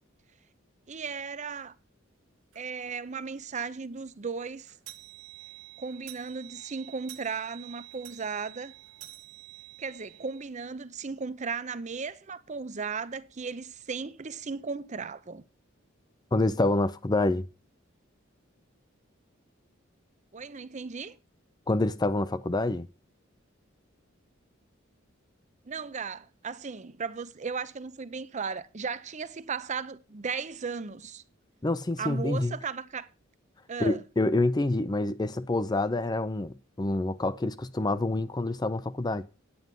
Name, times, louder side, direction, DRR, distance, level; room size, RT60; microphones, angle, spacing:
voice 1, 0.9-1.8 2.6-4.7 5.8-8.7 9.8-15.4 20.3-21.2 25.6-31.2 32.0-33.1 33.7-34.0, right 5 dB, 35° right, 0.6 m, -36 dB
sound 1, 2.5-2.7 3.2-3.3 3.6-3.7 4.0-10.4, right 17 dB, 75° right, 1.2 m, -48 dB
voice 2, 16.3-17.5 21.7-22.9 31.6-32.6 33.8-39.2, left 2 dB, 20° left, 0.5 m, -27 dB
9.5 x 9.5 x 5.3 m
head